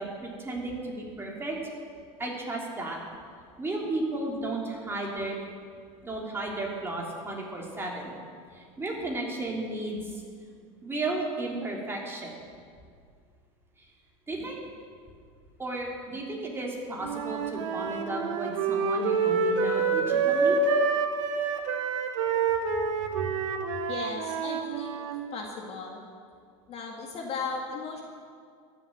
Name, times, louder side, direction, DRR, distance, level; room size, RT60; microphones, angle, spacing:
voice 1, 0.0-1.6 2.2-3.0 3.6-5.4 6.0-8.1 8.5-10.2 10.8-12.4 13.8-13.9 14.3-14.6 15.6-20.6 23.2-23.3, right 2 dB, 15° right, -2 dB, 3.3 m, -34 dB
Wind instrument woodwind instrument, 17.0-25.1, right 4 dB, 80° right, 1.5 m, -27 dB
voice 2, 23.9-24.9 25.3-26.0 26.7-28.0, left 4 dB, 40° left, 0 dB, 2.0 m, -36 dB
14.0 x 7.3 x 8.9 m, 2.1 s
supercardioid pair, 120°, 16 cm